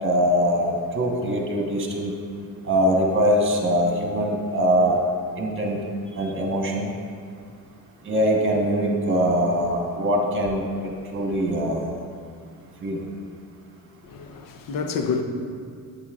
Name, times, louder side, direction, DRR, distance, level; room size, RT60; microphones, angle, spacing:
voice 1, 0.0-2.1 2.6-5.0 5.4-5.8 6.1-6.9 8.0-11.8 12.8-13.0, equal, 30° right, 1.3 m, -22 dB
voice 2, 14.0-15.2, left 5 dB, 55° left, 0.8 m, -28 dB
8.6 x 7.3 x 2.5 m
cardioid pair, 90°, 39 cm